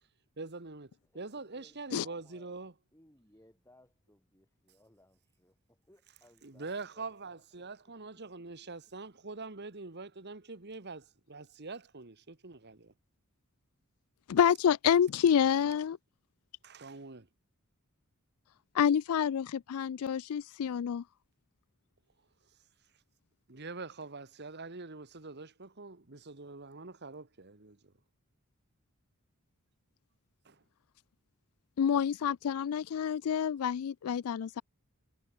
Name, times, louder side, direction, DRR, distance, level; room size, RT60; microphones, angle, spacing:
voice 1, 0.4-2.7 6.4-12.9 16.6-17.3 23.5-27.9 30.4-30.6, right 3 dB, 50° right, 1.6 m, -44 dB
voice 2, 1.0-2.6 2.9-7.2 7.6-7.7, left 1 dB, 15° left, 5.2 m, -65 dB
voice 3, 14.3-16.0 18.7-21.0 31.8-34.6, left 8 dB, 80° left, 0.4 m, -28 dB
head